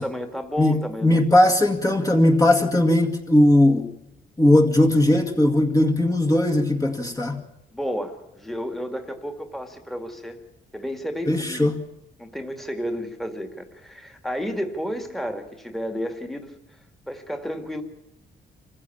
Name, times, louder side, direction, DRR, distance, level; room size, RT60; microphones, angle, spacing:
voice 1, 0.0-1.5 7.7-10.4 10.7-11.7 12.2-16.5 17.1-17.8, equal, ahead, 5 dB, 2.1 m, -32 dB
voice 2, 0.6-3.9 4.4-7.4 11.3-11.8, left 1 dB, 15° left, 1 dB, 2.1 m, -18 dB
26.0 x 15.5 x 7.2 m, 0.93 s
cardioid pair, 120°, 19 cm